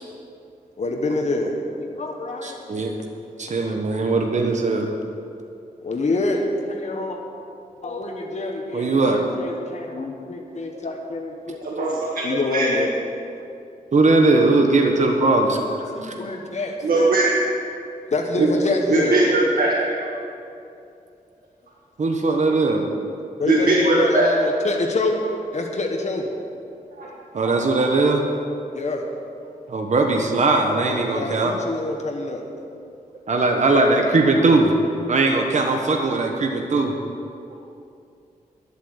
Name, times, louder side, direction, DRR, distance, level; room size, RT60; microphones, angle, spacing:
voice 1, 0.8-2.6 5.8-7.2 7.8-12.9 15.7-17.1 18.1-19.2 23.4-26.3 28.7-29.0 31.1-32.4, left 2 dB, 50° left, 2 dB, 1.4 m, -26 dB
voice 2, 2.4-2.9 3.4-4.9 8.7-9.2 13.9-15.6 16.0-16.1 22.0-22.9 27.3-28.2 29.7-31.5 33.3-34.7 35.1-36.9, right 3 dB, 50° right, 2 dB, 1.2 m, -19 dB
voice 3, 11.6-12.7 16.8-17.3 18.4-18.5 18.9-19.7 20.0-20.1 23.5-24.3 27.0-27.1, right 2 dB, 70° right, -5 dB, 1.8 m, -20 dB
11.0 x 8.3 x 8.0 m, 2.6 s
wide cardioid pair, 90°, 15 cm